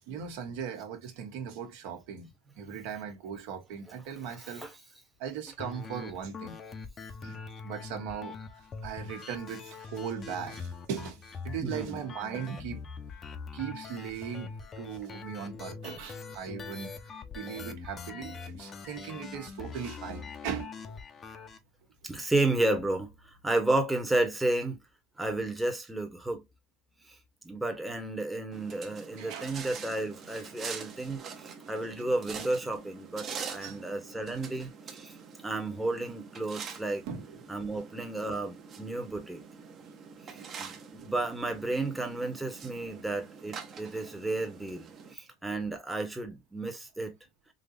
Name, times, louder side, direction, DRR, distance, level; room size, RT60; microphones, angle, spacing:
voice 1, 0.1-2.3 2.6-4.7 5.2-6.6 7.2-7.4 7.6-12.8 13.5-16.9 17.3-21.0 29.2-29.5 33.5-33.8 37.1-37.4 40.3-40.5 41.0-41.1 43.9-44.0, right 7 dB, 70° right, 1.2 m, -39 dB
sound 1, 5.6-21.6, left 5 dB, 30° left, 0.7 m, -43 dB
voice 2, 11.6-12.0 22.0-24.8 25.2-26.4 27.4-35.1 35.4-37.0 37.5-39.4 40.6-47.1, right 2 dB, 5° right, 1.0 m, -32 dB
sound 2, 28.5-45.1, right 6 dB, 35° right, 0.8 m, -45 dB
3.8 x 2.8 x 2.5 m
supercardioid pair, 120°, 0 cm